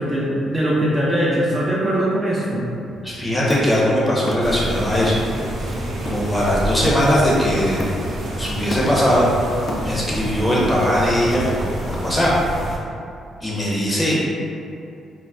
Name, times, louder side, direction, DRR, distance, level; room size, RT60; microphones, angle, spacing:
voice 1, 0.0-2.7 14.1-14.2, right 1 dB, 20° right, -6 dB, 0.4 m, -21 dB
voice 2, 3.0-5.2 6.0-7.8 8.4-9.3 9.8-12.3 13.4-14.2, equal, 15° left, -6 dB, 0.7 m, -20 dB
Hammer, 3.5-4.6 5.0-5.4 5.7-7.3 7.8-8.2 8.5-10.2, left 1 dB, 45° left, 0.4 m, -31 dB
sound 1, 4.4-12.8, right 1 dB, 60° right, 0.6 m, -28 dB
2.4 x 2.1 x 3.4 m, 2.6 s
cardioid pair, 90°, 0 cm